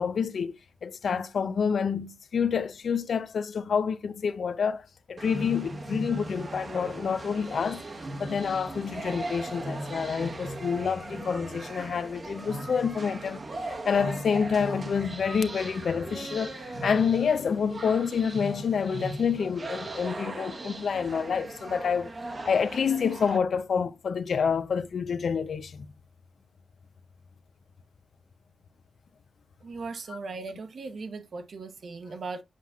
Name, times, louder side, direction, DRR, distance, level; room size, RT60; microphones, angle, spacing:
voice 1, 0.0-7.8 8.2-13.4 13.9-22.1 22.5-25.9 30.1-30.2, left 6 dB, 75° left, 0.5 m, -28 dB
sound 1, 5.2-23.4, right 2 dB, 45° right, 1.0 m, -38 dB
voice 2, 29.6-32.4, right 4 dB, 70° right, 1.0 m, -38 dB
7.4 x 5.8 x 2.3 m
wide cardioid pair, 110°, 0 cm